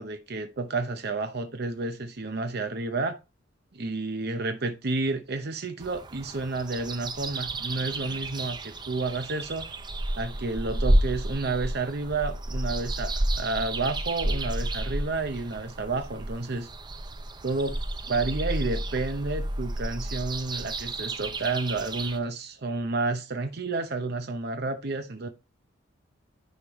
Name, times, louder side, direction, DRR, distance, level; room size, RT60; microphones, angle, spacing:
voice 1, 0.0-3.2 3.7-9.7 10.2-16.7 17.4-17.8 18.1-25.3, right 3 dB, 55° right, 0.8 m, -30 dB
sound 1, 5.8-22.2, right 1 dB, 20° right, 0.5 m, -31 dB
9.8 x 5.2 x 3.0 m
head